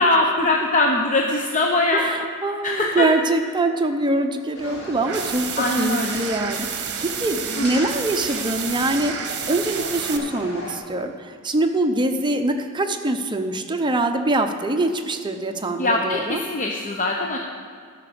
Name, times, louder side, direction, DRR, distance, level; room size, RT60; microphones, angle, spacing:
voice 1, 0.0-2.0 2.6-3.1 5.6-6.2 7.6-7.8 15.7-17.4, left 2 dB, 35° left, 0 dB, 0.7 m, -22 dB
voice 2, 1.9-5.5 5.7-16.4, right 2 dB, 20° right, 5 dB, 0.7 m, -24 dB
sound 1, 4.5-10.8, equal, 55° left, 2.5 m, -36 dB
sound 2, 5.0-10.2, right 8 dB, 55° right, 0.9 m, -30 dB
12.5 x 5.9 x 6.7 m, 2.2 s
head